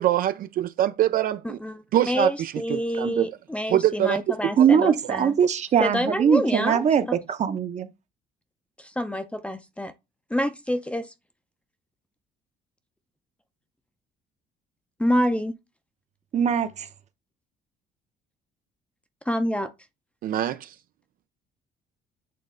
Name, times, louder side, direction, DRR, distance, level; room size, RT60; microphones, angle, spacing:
voice 1, 0.0-1.6 1.9-3.3 3.7-4.7 20.2-20.7, right 12 dB, 60° right, 0.4 m, -24 dB
voice 2, 1.4-5.4 5.8-6.8 7.1-7.2 8.8-9.9 10.3-11.1 15.0-15.6 19.3-19.7, equal, 5° left, 0.6 m, -27 dB
voice 3, 4.6-7.9 16.3-16.9, right 7 dB, 45° right, 0.8 m, -21 dB
8.5 x 3.2 x 3.8 m
cardioid pair, 110°, 17 cm